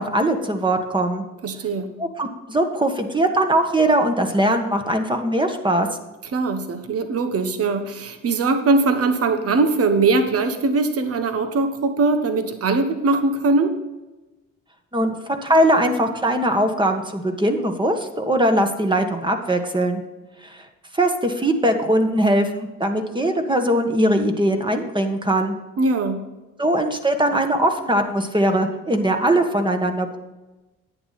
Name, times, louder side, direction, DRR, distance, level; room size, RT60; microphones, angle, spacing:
voice 1, 0.0-1.3 2.0-5.9 14.9-20.0 20.4-20.6 20.9-25.6 26.6-30.2, right 1 dB, 15° right, 5 dB, 1.6 m, -21 dB
voice 2, 1.4-1.9 6.3-13.7 25.8-26.2, right 3 dB, 50° right, 8 dB, 1.2 m, -21 dB
11.0 x 9.3 x 4.2 m, 1.1 s
cardioid pair, 90°, 30 cm